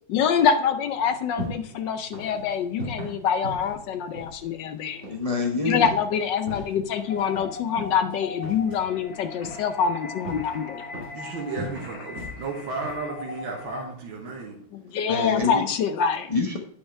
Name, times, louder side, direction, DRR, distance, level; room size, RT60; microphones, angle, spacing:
voice 1, 0.1-5.0 5.6-10.8 14.8-16.3, left 7 dB, 70° left, 1.2 m, -25 dB
sound 1, 0.9-14.4, equal, 35° right, 2.2 m, -40 dB
voice 2, 5.0-5.9 15.0-15.6 16.3-16.6, left 4 dB, 30° left, 0.6 m, -26 dB
sound 2, 7.0-13.8, left 3 dB, 50° left, 2.0 m, -40 dB
voice 3, 11.1-14.6, right 4 dB, 75° right, 2.1 m, -34 dB
8.9 x 5.6 x 4.4 m
omnidirectional pair, 2.3 m